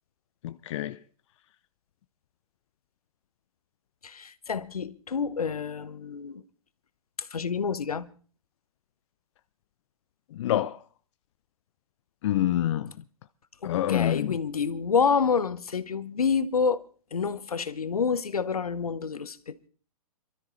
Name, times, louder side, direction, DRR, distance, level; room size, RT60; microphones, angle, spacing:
voice 1, 0.4-1.0 10.3-10.8 12.2-12.9 13.6-14.4, left 12 dB, 55° left, 0.6 m, -27 dB
voice 2, 4.0-6.4 7.2-8.1 13.6-16.8 17.1-19.7, left 5 dB, 80° left, 1.0 m, -28 dB
26.5 x 13.0 x 3.2 m
figure-of-eight pair, 115°, 19 cm